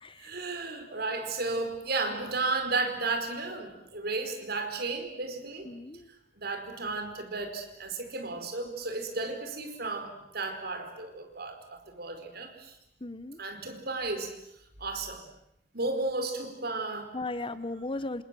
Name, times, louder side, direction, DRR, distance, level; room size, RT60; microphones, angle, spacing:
voice 1, 0.2-5.7 6.4-12.8 13.4-14.3 14.8-15.3 15.7-17.1, right 3 dB, 60° right, 6 dB, 4.9 m, -33 dB
voice 2, 5.6-6.1 13.0-13.4 17.1-18.2, left 2 dB, 30° left, 14 dB, 1.1 m, -36 dB
28.5 x 27.0 x 7.7 m, 0.77 s
head